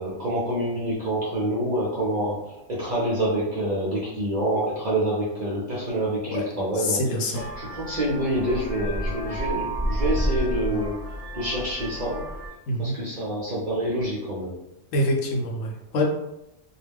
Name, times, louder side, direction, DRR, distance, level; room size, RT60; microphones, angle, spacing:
voice 1, 0.0-7.0 7.6-11.0 11.3-12.2 12.8-14.5, right 1 dB, 55° right, -7 dB, 0.5 m, -27 dB
voice 2, 6.7-7.4 12.7-13.0 14.9-16.0, left 1 dB, 75° left, 0 dB, 0.9 m, -25 dB
Vehicle horn car horn honking, 7.3-12.5, equal, 35° left, 0.6 m, -30 dB
2.3 x 2.1 x 3.4 m, 0.88 s
omnidirectional pair, 1.4 m